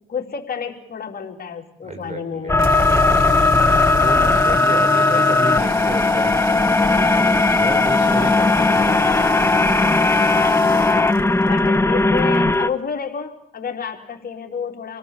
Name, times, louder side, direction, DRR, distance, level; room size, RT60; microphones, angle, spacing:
voice 1, 0.1-3.4 10.3-10.8 11.4-15.0, left 6 dB, 50° left, 2 dB, 3.5 m, -30 dB
voice 2, 1.8-9.2, right 2 dB, 35° right, 7 dB, 5.4 m, -33 dB
sound 1, 2.5-12.7, left 3 dB, 15° left, 1.3 m, -17 dB
sound 2, 2.5-12.7, right 10 dB, 90° right, 1.7 m, -37 dB
27.5 x 18.0 x 7.6 m, 0.80 s
cardioid pair, 90°, 20 cm